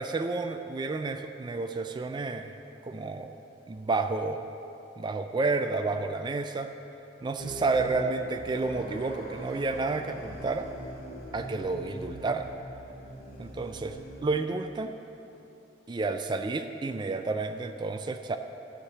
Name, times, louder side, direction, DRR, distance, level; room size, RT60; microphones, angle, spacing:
voice 1, 0.0-2.5 2.8-3.4 3.7-4.5 5.0-6.7 7.2-10.7 11.3-12.5 13.4-15.0 15.9-18.4, right 3 dB, 25° right, 7 dB, 0.3 m, -30 dB
sound 1, 7.4-14.3, right 1 dB, 60° left, 2.2 m, -42 dB
12.5 x 5.0 x 7.2 m, 3.0 s
head